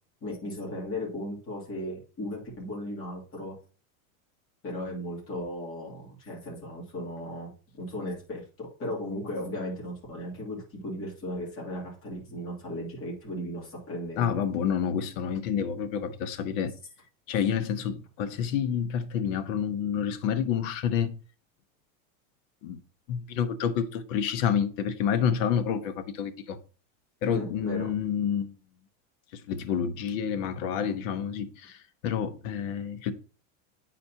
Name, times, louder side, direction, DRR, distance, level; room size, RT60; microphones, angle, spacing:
voice 1, 0.2-3.5 4.6-14.3 27.3-27.9, left 1 dB, 30° left, 2.7 m, -36 dB
voice 2, 14.2-16.7 17.3-21.2 22.6-22.8 23.1-26.6 27.2-28.5 29.3-33.1, left 8 dB, 65° left, 0.9 m, -29 dB
9.2 x 4.2 x 2.8 m
supercardioid pair, 150°, 41 cm